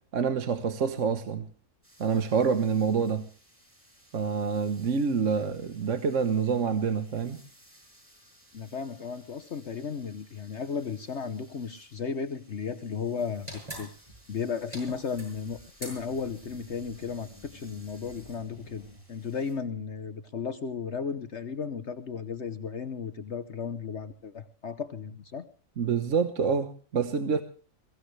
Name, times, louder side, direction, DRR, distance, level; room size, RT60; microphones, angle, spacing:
voice 1, 0.1-1.5 2.0-3.3 4.1-7.4 25.8-27.4, right 6 dB, 65° right, 1.5 m, -27 dB
sound 1, 1.8-19.5, equal, 10° right, 7.8 m, -59 dB
voice 2, 8.5-13.9 14.3-25.5, left 6 dB, 55° left, 1.3 m, -35 dB
sound 2, 13.4-19.0, right 1 dB, 25° right, 7.5 m, -46 dB
23.0 x 15.5 x 3.3 m
omnidirectional pair, 1.4 m